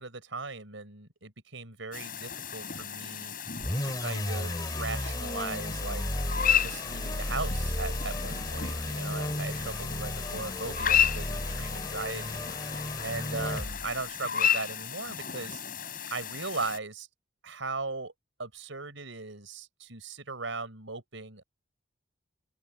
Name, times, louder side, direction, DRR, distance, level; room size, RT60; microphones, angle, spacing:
voice 1, 0.0-3.3 3.8-6.0 6.5-12.4 13.0-15.6 16.1-17.1 17.4-18.1 18.4-21.4, right 3 dB, 80° right, 4.9 m, -38 dB
sound 1, 1.9-16.8, left 8 dB, 45° left, 5.9 m, -33 dB
sound 2, 3.6-14.0, left 1 dB, 20° left, 4.4 m, -34 dB
open air
head